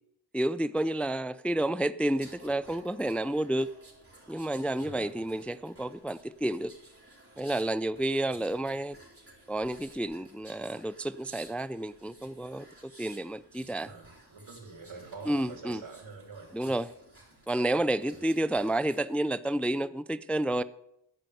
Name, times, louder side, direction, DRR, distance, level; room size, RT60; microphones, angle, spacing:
voice 1, 0.3-3.7 4.3-6.7 7.4-9.0 9.5-13.9 15.3-15.8 16.5-16.9 17.5-20.6, right 1 dB, 5° left, 15 dB, 0.4 m, -30 dB
sound 1, 2.1-19.1 19.5-19.8, right 1 dB, 30° right, 4.3 m, -55 dB
voice 2, 4.8-5.1 8.3-8.4 13.8-16.5 18.1-18.3, right 4 dB, 85° right, 0 dB, 3.2 m, -46 dB
13.5 x 5.4 x 7.8 m, 0.80 s
cardioid pair, 55°, 45 cm